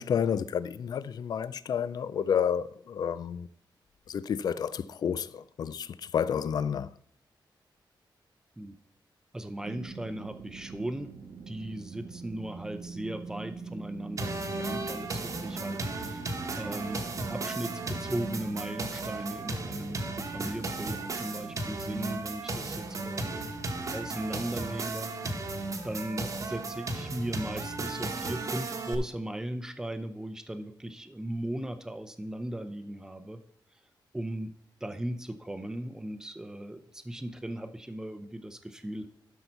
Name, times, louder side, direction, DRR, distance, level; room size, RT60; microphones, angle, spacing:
voice 1, 0.0-3.5 4.1-6.9, left 8 dB, 55° left, 0.4 m, -30 dB
voice 2, 9.3-11.1 11.5-16.3 16.6-25.1 25.8-33.4 34.1-34.5 34.8-39.1, right 1 dB, 5° right, 0.6 m, -37 dB
sound 1, 9.6-21.6, right 5 dB, 65° right, 0.7 m, -45 dB
sound 2, 14.2-28.9, right 2 dB, 40° right, 1.1 m, -35 dB
12.0 x 5.5 x 4.5 m
wide cardioid pair, 165°, 8 cm